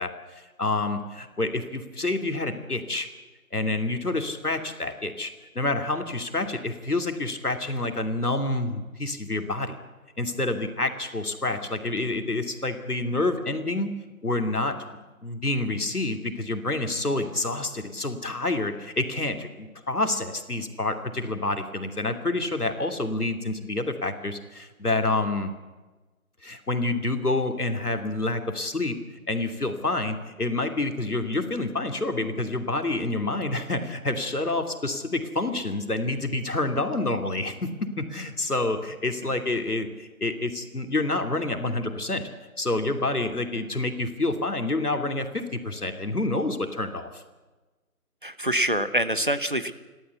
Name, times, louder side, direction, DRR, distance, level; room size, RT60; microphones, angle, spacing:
voice 1, 0.0-3.1 3.5-9.8 10.2-13.9 14.2-14.8 15.2-25.5 26.4-29.0 29.3-42.3 42.6-47.2, left 2 dB, 80° left, 6 dB, 2.9 m, -28 dB
voice 2, 48.2-49.7, right 1 dB, 35° right, 12 dB, 0.9 m, -25 dB
29.5 x 13.0 x 8.2 m, 1.2 s
figure-of-eight pair, 175°, 45 cm